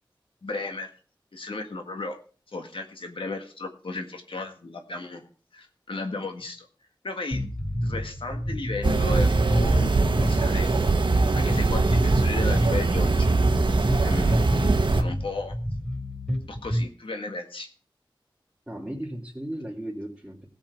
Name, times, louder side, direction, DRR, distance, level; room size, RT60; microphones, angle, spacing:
voice 1, 0.4-0.9 1.3-2.2 2.5-6.7 7.0-7.4 7.8-9.9 10.2-10.8 11.3-13.3 14.0-14.5 14.9-15.6 16.5-17.7, left 2 dB, 90° left, 4 dB, 1.8 m, -34 dB
sound 1, 7.3-16.9, equal, 10° left, 4.1 m, -30 dB
sound 2, 8.8-15.0, right 3 dB, 65° right, 1.2 m, -22 dB
voice 2, 18.7-20.4, right 1 dB, 10° right, -4 dB, 2.7 m, -36 dB
17.0 x 7.8 x 4.6 m, 0.38 s
wide cardioid pair, 65°, 9 cm